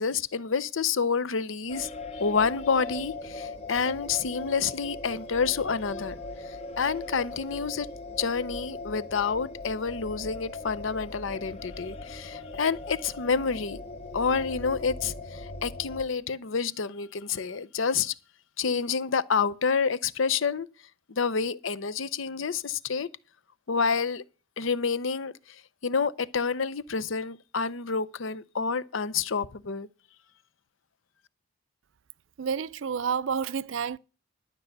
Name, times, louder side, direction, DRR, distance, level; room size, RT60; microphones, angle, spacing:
voice 1, 0.0-6.2 6.4-7.9 8.2-13.8 14.1-18.1 18.6-20.7 21.1-23.1 23.7-24.2 24.6-25.3 25.8-29.9, left 5 dB, 70° left, 0.7 m, -28 dB
sound 1, 1.7-16.1, left 2 dB, 30° left, 0.9 m, -40 dB
voice 2, 32.4-34.0, right 6 dB, 70° right, 0.5 m, -29 dB
12.0 x 5.4 x 7.9 m
head